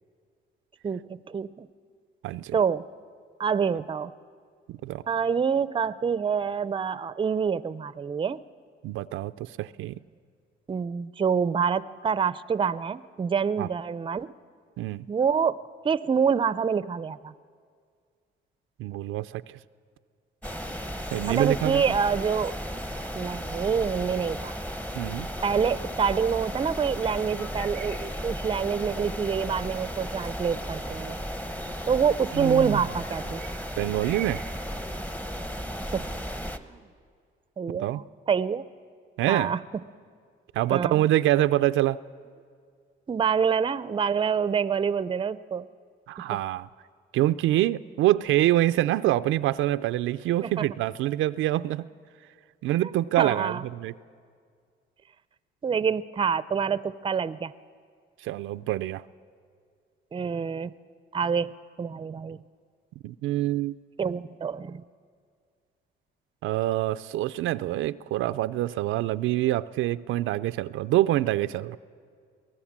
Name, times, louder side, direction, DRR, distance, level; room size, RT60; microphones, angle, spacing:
voice 1, 0.8-1.7 2.5-2.8 3.4-4.1 5.1-8.4 10.7-14.3 15.1-15.6 15.8-17.3 21.3-22.6 23.1-24.5 25.4-31.2 31.9-33.4 35.9-36.1 36.7-36.8 37.6-38.6 39.3-39.6 40.7-41.0 43.1-45.7 50.4-50.7 52.8-52.9 53.2-53.6 55.6-57.5 60.1-60.7 61.1-61.5 61.8-62.4 64.0-64.8, right 6 dB, 25° right, 16 dB, 0.5 m, -26 dB
voice 2, 2.2-2.6 4.7-5.0 8.8-10.0 13.6-13.7 14.8-15.1 18.8-19.6 21.1-21.8 25.0-25.3 32.3-32.8 33.8-34.4 37.7-38.0 39.2-39.5 40.5-42.0 46.1-46.7 47.1-51.9 52.6-53.9 58.2-59.0 63.0-63.8 66.4-71.8, right 14 dB, 85° right, 12 dB, 0.5 m, -26 dB
sound 1, 20.4-36.6, equal, 5° left, 0.9 m, -35 dB
23.0 x 17.5 x 7.3 m, 2.1 s
cardioid pair, 90°, 20 cm